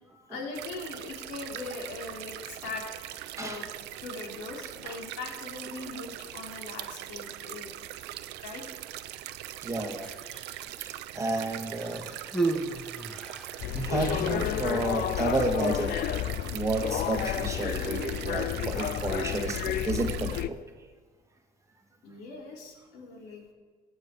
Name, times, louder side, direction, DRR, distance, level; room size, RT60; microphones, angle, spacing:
voice 1, 0.3-2.9 3.4-3.7 4.0-7.8 8.4-8.7 22.0-23.5, left 3 dB, 85° left, 0 dB, 3.5 m, -40 dB
sound 1, 0.5-20.4, right 14 dB, 85° right, 0.7 m, -41 dB
voice 2, 9.6-10.1 10.8-12.1 13.7-16.0 16.5-20.6, right 2 dB, 20° right, 3 dB, 1.9 m, -31 dB
Human voice, 9.9-10.8 11.7-13.7 14.6-14.7, right 3 dB, 5° left, 1.7 m, -34 dB
sound 2, 13.6-20.5, left 12 dB, 60° left, 0.5 m, -31 dB
22.5 x 8.2 x 4.8 m, 1.5 s
cardioid pair, 110°, 17 cm